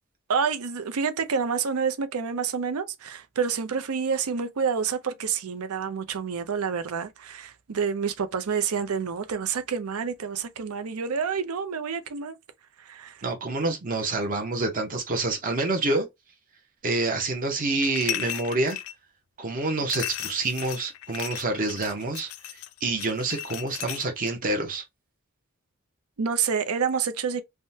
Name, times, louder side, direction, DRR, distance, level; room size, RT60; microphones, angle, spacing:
voice 1, 0.3-12.4 12.8-13.2 26.2-27.4, right 6 dB, 80° right, 0.5 m, -28 dB
voice 2, 13.2-16.1 16.8-18.8 19.4-22.3 22.8-24.8, right 2 dB, 40° right, 0.7 m, -27 dB
sound 1, 17.8-18.9 19.9-24.3, left 12 dB, 70° left, 0.4 m, -35 dB
3.5 x 2.1 x 2.7 m
head